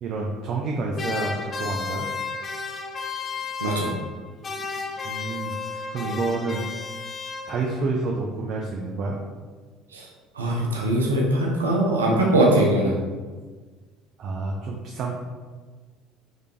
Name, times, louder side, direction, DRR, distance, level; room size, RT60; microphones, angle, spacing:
voice 1, 0.0-2.1 5.0-6.7 7.5-9.2 14.2-15.1, right 3 dB, 50° right, -1 dB, 0.5 m, -29 dB
sound 1, 0.9-4.2 4.4-7.8, left 5 dB, 35° left, 0.6 m, -32 dB
voice 2, 3.6-3.9 9.9-10.1 10.4-13.0, right 1 dB, 85° right, -1 dB, 0.7 m, -21 dB
5.0 x 3.4 x 2.9 m, 1.4 s
hypercardioid pair, 65°, 0 cm